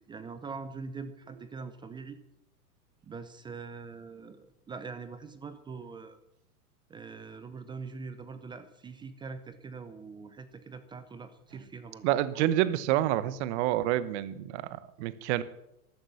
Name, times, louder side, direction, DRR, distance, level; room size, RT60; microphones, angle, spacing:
voice 1, 0.1-2.2 3.0-6.2 6.9-12.1, right 4 dB, 10° right, 12 dB, 0.5 m, -43 dB
voice 2, 12.0-15.4, right 13 dB, 45° right, 16 dB, 1.0 m, -28 dB
13.0 x 11.5 x 6.9 m, 0.81 s
hypercardioid pair, 135°, 46 cm